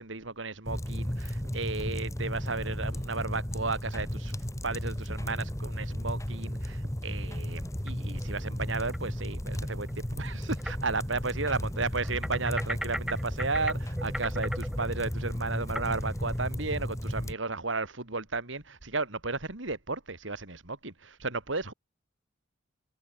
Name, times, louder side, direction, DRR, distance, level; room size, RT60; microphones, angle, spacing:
voice 1, 0.0-4.3 4.6-21.7, right 3 dB, 70° right, 2.9 m, -34 dB
sound 1, 0.6-17.3, equal, 15° left, 2.4 m, -34 dB
sound 2, 7.6-8.3 8.9-9.0 9.9-10.0 10.6-10.8 11.1-11.2 12.0-16.5, equal, 5° right, 1.9 m, -39 dB
head